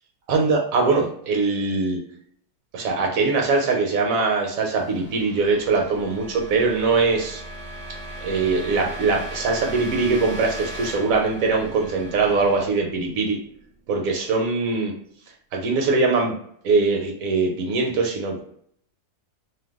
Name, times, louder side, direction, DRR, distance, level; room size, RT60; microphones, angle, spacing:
voice 1, 0.3-2.0 2.7-7.4 8.2-13.4 13.9-14.9 15.5-16.3 16.6-18.4, right 4 dB, 70° right, 1 dB, 0.9 m, -22 dB
sound 1, 4.1-13.8, right 1 dB, 40° right, 0.5 m, -38 dB
2.6 x 2.2 x 3.4 m, 0.65 s
omnidirectional pair, 1.6 m